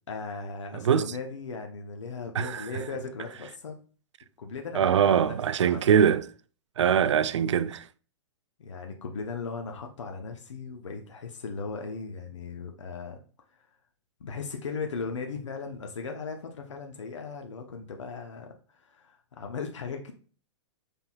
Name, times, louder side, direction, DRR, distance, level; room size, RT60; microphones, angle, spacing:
voice 1, 0.1-3.8 4.4-5.4 5.6-5.9 6.9-7.2 8.6-13.2 13.5-13.7 14.2-20.1, left 4 dB, 75° left, 0.8 m, -37 dB
voice 2, 0.7-1.0 2.4-2.7 4.7-6.3 6.8-7.9, right 8 dB, 70° right, 0.4 m, -23 dB
6.0 x 3.4 x 2.3 m
figure-of-eight pair, 115°, 16 cm